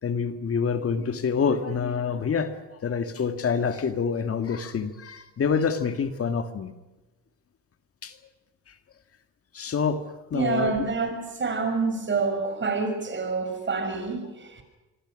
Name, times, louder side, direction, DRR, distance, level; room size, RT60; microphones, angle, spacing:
voice 1, 0.0-6.7 8.0-8.2 8.7-8.8 9.5-10.7, left 6 dB, 50° left, 9 dB, 1.9 m, -27 dB
voice 2, 10.3-14.6, right 4 dB, 40° right, 6 dB, 6.5 m, -27 dB
26.0 x 23.5 x 6.4 m, 1.1 s
cardioid pair, 90°, 30 cm